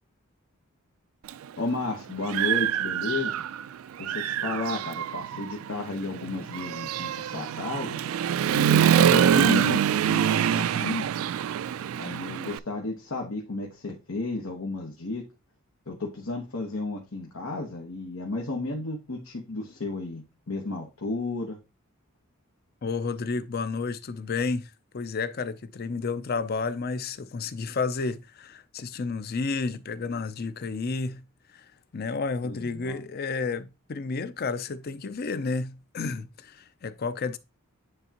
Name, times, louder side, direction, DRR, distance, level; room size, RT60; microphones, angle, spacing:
Human voice / Motorcycle, 1.3-1.4 1.9-3.6 4.0-12.6, right 9 dB, 75° right, 0.3 m, -25 dB
voice 1, 1.6-3.4 4.0-8.0 8.5-11.1 12.0-15.2 15.9-21.6 32.4-33.0, left 2 dB, 90° left, 1.2 m, -33 dB
voice 2, 22.8-31.2 31.5-37.4, left 4 dB, 45° left, 0.5 m, -31 dB
9.7 x 3.5 x 2.9 m
head